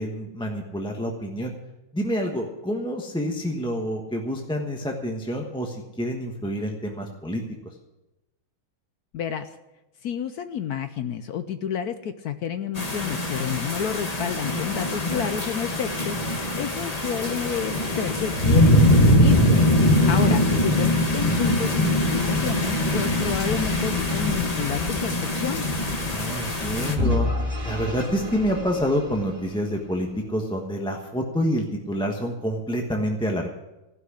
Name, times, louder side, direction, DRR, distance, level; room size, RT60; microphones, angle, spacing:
voice 1, 0.0-1.5 1.9-7.4 26.1-27.3 27.6-33.5, equal, 5° left, 1 dB, 0.8 m, -28 dB
voice 2, 9.1-9.5 10.0-19.4 20.1-25.6, left 8 dB, 70° left, 10 dB, 1.0 m, -30 dB
sound 1, 12.8-27.0, left 1 dB, 20° left, 1.2 m, -22 dB
Vehicle / Engine, 27.0-30.0, left 2 dB, 25° right, 2.9 m, -29 dB
15.5 x 6.1 x 9.8 m, 0.99 s
omnidirectional pair, 2.1 m